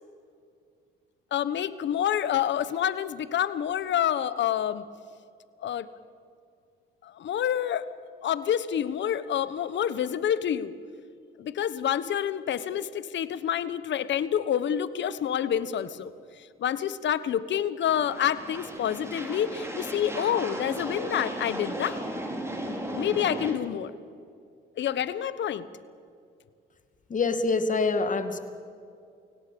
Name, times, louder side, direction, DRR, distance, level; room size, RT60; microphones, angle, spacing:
voice 1, 1.3-4.8 5.6-5.9 7.0-7.8 8.2-10.8 11.4-22.0 22.9-23.9 24.8-25.7, left 10 dB, 65° left, 15 dB, 1.2 m, -28 dB
sound 1, 17.8-23.6, right 1 dB, 15° right, 4.8 m, -35 dB
voice 2, 27.1-28.4, left 3 dB, 40° left, 9 dB, 2.2 m, -25 dB
29.0 x 17.5 x 7.0 m, 2.4 s
cardioid pair, 90°, 20 cm